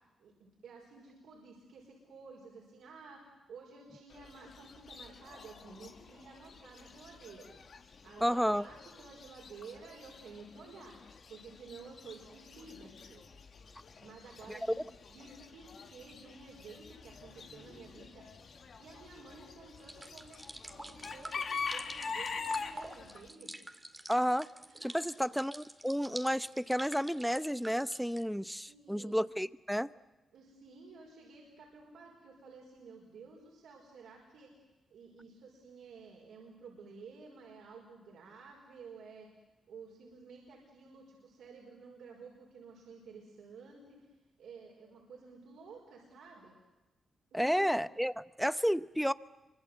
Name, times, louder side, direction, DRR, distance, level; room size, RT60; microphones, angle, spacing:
voice 1, 0.2-11.0 11.3-13.2 14.0-14.8 15.1-18.4 18.8-23.5 24.7-24.9 28.7-29.2 30.3-34.5 34.9-39.3 39.7-44.1 44.4-46.6 47.3-47.8, right 4 dB, 80° right, 5.2 m, -52 dB
Chicken rooster / Bird, 4.1-23.3, left 5 dB, 60° left, 2.2 m, -45 dB
voice 2, 8.2-8.6 14.5-14.6 24.1-24.5 24.8-29.9 47.3-49.1, equal, ahead, 0.9 m, -31 dB
sound 1, 19.8-28.2, right 1 dB, 15° right, 2.2 m, -47 dB
26.5 x 25.0 x 8.1 m
supercardioid pair, 60°, 0 cm